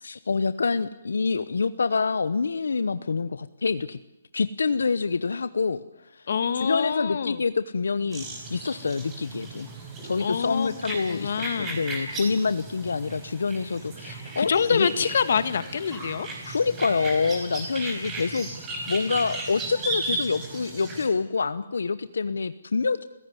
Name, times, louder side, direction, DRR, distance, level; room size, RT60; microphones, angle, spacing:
voice 1, 0.0-4.0 4.3-6.3 6.5-9.7 10.0-14.9 16.4-23.0, left 4 dB, 85° left, 13 dB, 0.9 m, -27 dB
voice 2, 6.3-7.4 10.2-11.8 14.1-16.3, left 6 dB, 55° left, 13 dB, 1.8 m, -26 dB
sound 1, 8.1-21.1, right 2 dB, 15° right, 4.9 m, -36 dB
30.0 x 16.5 x 9.7 m, 0.89 s
hypercardioid pair, 170°, 0 cm